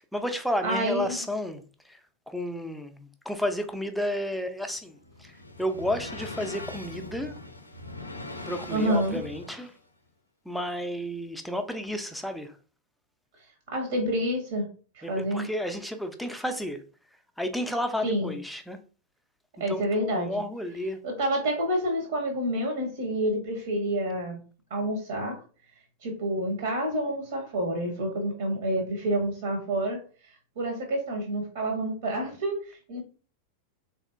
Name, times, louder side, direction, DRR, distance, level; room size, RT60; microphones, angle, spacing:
voice 1, 0.1-2.0 2.3-5.3 5.6-7.4 8.5-9.7 10.5-12.6 15.0-16.8 17.4-18.8 19.7-21.0, equal, ahead, 0.4 m, -32 dB
voice 2, 0.6-1.2 8.7-9.2 13.7-14.7 14.9-15.5 18.0-18.3 19.6-20.4 21.0-24.4 24.7-25.4 26.0-30.0 30.3-33.0, right 1 dB, 55° right, 0.8 m, -28 dB
sound 1, 4.7-9.8, left 2 dB, 85° left, 0.4 m, -41 dB
3.5 x 2.6 x 2.4 m
figure-of-eight pair, 90°, 0 cm